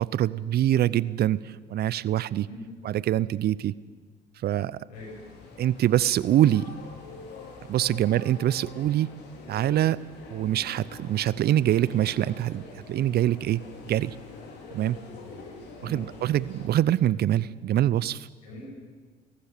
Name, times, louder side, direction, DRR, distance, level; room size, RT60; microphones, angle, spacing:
voice 1, 0.0-2.5 2.8-3.7 4.4-4.8 5.6-6.7 7.7-9.1 9.5-10.0 10.3-14.2 14.7-15.0 15.8-18.3, right 12 dB, 50° right, 20 dB, 0.7 m, -24 dB
sound 1, 4.9-16.7, left 3 dB, 55° left, 5.0 m, -45 dB
voice 2, 15.0-15.5 15.8-16.1 18.4-18.7, left 1 dB, 85° left, -1 dB, 7.6 m, -42 dB
23.0 x 18.5 x 6.8 m, 1.4 s
hypercardioid pair, 60°, 20 cm